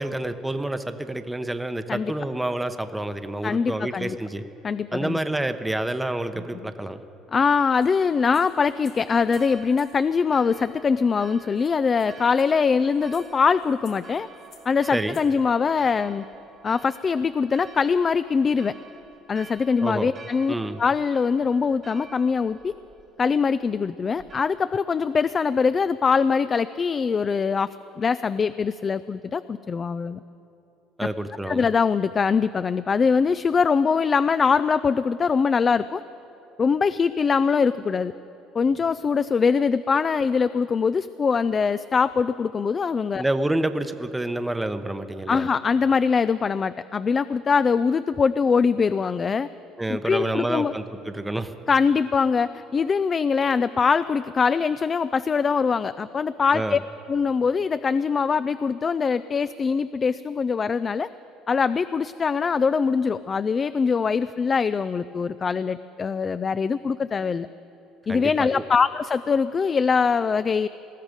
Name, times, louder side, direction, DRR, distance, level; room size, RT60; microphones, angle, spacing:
voice 1, 0.0-4.4 4.9-7.0 14.9-15.2 19.8-20.1 20.5-20.8 31.0-31.7 43.2-45.5 49.8-51.5 56.5-56.8 68.1-68.6, right 1 dB, 10° right, 9 dB, 0.8 m, -28 dB
voice 2, 3.4-4.2 4.6-5.2 7.3-14.3 14.7-16.2 16.6-18.7 19.3-22.7 23.2-27.7 28.0-30.2 31.5-36.0 36.6-38.1 38.5-43.2 45.3-49.5 49.9-50.7 51.7-56.8 57.1-61.1 61.5-67.5 68.1-70.7, left 5 dB, 35° left, 14 dB, 0.4 m, -23 dB
sound 1, 7.8-10.0 10.9-11.0 11.3-11.4 11.6-15.3, left 7 dB, 55° left, 2.8 m, -55 dB
Church bell, 9.3-24.4, right 4 dB, 40° right, 1.5 m, -49 dB
20.0 x 14.0 x 5.2 m, 2.9 s
supercardioid pair, 95°, 0 cm